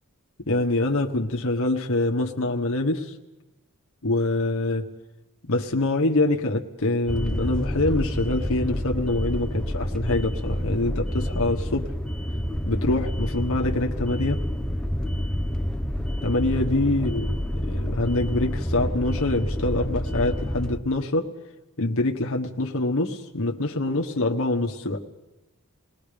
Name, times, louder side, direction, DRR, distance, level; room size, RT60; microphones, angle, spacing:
voice 1, 0.5-3.1 4.0-4.9 5.5-11.9 12.7-14.4 16.2-21.3 21.8-25.0, left 2 dB, 65° left, 1 dB, 1.4 m, -25 dB
sound 1, 7.1-20.8, equal, 5° left, 0.9 m, -28 dB
29.0 x 20.0 x 5.2 m, 1.0 s
head